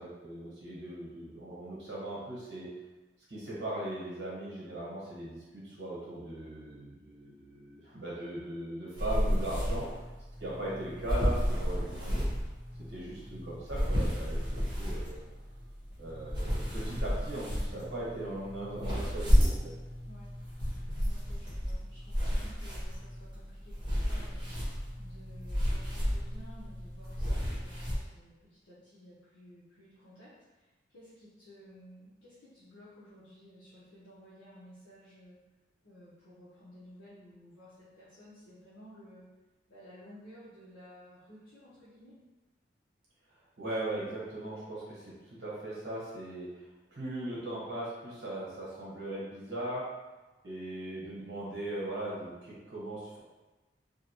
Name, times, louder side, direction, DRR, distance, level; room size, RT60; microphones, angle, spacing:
voice 1, 0.0-2.7 3.3-10.0 10.4-12.3 12.9-14.5 14.8-15.2 16.0-19.7 43.6-49.8 50.4-53.2, right 1 dB, 75° right, -7 dB, 1.0 m, -39 dB
sound 1, 9.0-28.0, equal, 25° right, 0.8 m, -32 dB
voice 2, 20.0-20.4 21.0-35.4 35.8-39.3 39.7-42.1, equal, 85° left, -11 dB, 0.7 m, -55 dB
2.7 x 2.2 x 2.8 m, 1.1 s
head